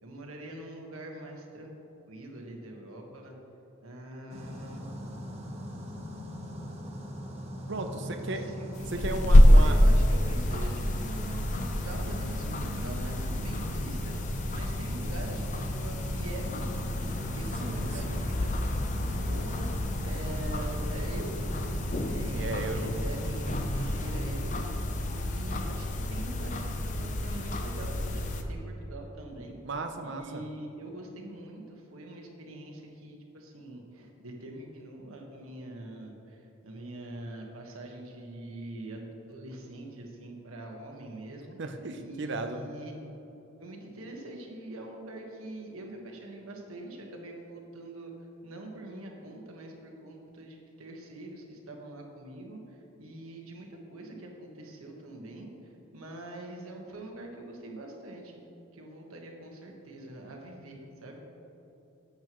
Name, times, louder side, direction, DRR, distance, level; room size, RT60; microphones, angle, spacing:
voice 1, 0.0-1.7 2.1-3.3 3.8-4.9 8.0-19.7 20.0-21.7 22.0-24.7 25.0-29.6 30.0-41.6 42.0-43.0 43.6-48.1 48.4-58.4 58.7-61.2, right 1 dB, 85° right, 1 dB, 1.5 m, -44 dB
sound 1, 4.3-24.2, equal, 30° right, 1.2 m, -40 dB
voice 2, 7.7-8.5 8.9-9.8 12.4-12.8 17.6-18.3 22.3-22.9 29.6-30.4 41.6-42.6, right 2 dB, 55° right, 6 dB, 0.7 m, -35 dB
sound 2, 8.8-28.4, left 1 dB, 35° left, 0.6 m, -27 dB
12.0 x 8.5 x 3.1 m, 3.0 s
head